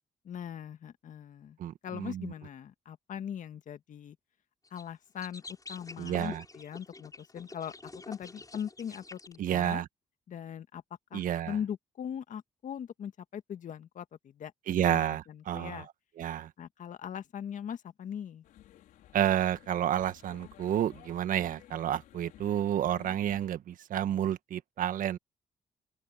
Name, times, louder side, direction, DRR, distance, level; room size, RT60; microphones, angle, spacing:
voice 1, 0.2-1.6 1.8-4.2 4.7-7.7 8.1-9.8 10.3-10.8 11.1-14.5 14.9-15.9 16.6-18.4, left 8 dB, 65° left, 1.8 m, -40 dB
voice 2, 1.6-2.3 6.0-6.4 9.4-9.8 11.1-11.5 14.7-15.8 16.2-16.5 19.1-25.2, right 10 dB, 75° right, 1.6 m, -30 dB
sound 1, 4.6-4.8 5.2-9.4, left 3 dB, 25° left, 6.9 m, -48 dB
sound 2, 18.4-23.5, left 13 dB, 80° left, 4.8 m, -55 dB
open air
supercardioid pair, 50°, 14 cm